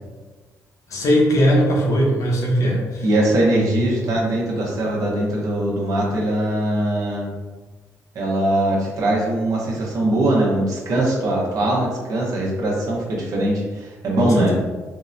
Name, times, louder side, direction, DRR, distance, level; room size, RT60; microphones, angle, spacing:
voice 1, 0.9-3.0 14.2-14.5, equal, 60° left, -1 dB, 0.7 m, -19 dB
voice 2, 3.0-7.3 8.1-14.5, right 1 dB, 65° right, -3 dB, 0.8 m, -21 dB
3.6 x 2.1 x 2.6 m, 1.3 s
cardioid pair, 100°, 6 cm